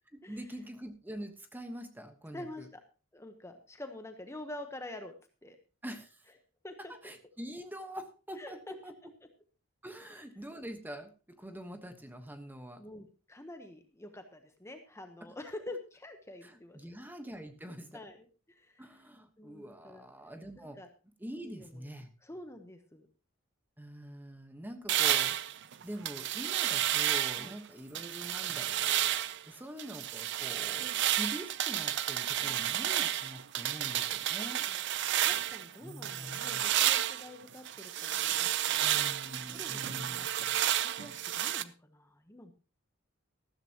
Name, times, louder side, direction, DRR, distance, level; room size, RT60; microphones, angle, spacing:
voice 1, 0.3-2.7 5.8-6.2 6.9-8.9 9.8-12.8 15.2-15.3 16.4-18.0 18.8-20.8 21.2-22.1 23.8-25.4 25.8-29.2 29.5-34.6 35.8-36.7 38.8-40.3, equal, 10° right, 7 dB, 1.2 m, -45 dB
voice 2, 2.3-2.8 3.1-5.1 5.4-5.6 6.6-6.9 8.4-8.7 12.8-16.9 17.9-18.8 19.4-20.0 20.6-20.9 21.4-21.9 22.2-23.0 27.3-27.5 32.4-32.9 34.5-34.8 35.1-38.5 38.8-39.1 39.5-42.5, left 1 dB, 15° left, 6 dB, 1.0 m, -47 dB
sound 1, 24.9-27.6 28.0-29.4 29.8-35.7 36.0-41.6, right 12 dB, 60° right, 0.6 m, -31 dB
14.0 x 13.0 x 2.9 m, 0.34 s
head